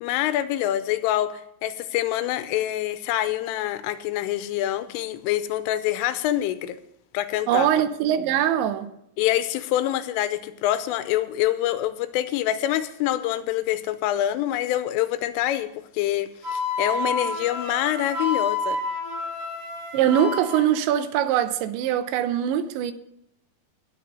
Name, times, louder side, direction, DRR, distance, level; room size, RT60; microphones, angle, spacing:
voice 1, 0.0-6.8 7.1-7.7 9.2-15.7 15.9-18.8, left 13 dB, 90° left, 3.3 m, -26 dB
voice 2, 7.5-8.9 19.9-22.9, right 10 dB, 80° right, 2.8 m, -22 dB
Wind instrument woodwind instrument, 16.4-20.6, left 3 dB, 40° right, 7.1 m, -29 dB
18.0 x 6.0 x 6.6 m
omnidirectional pair, 5.7 m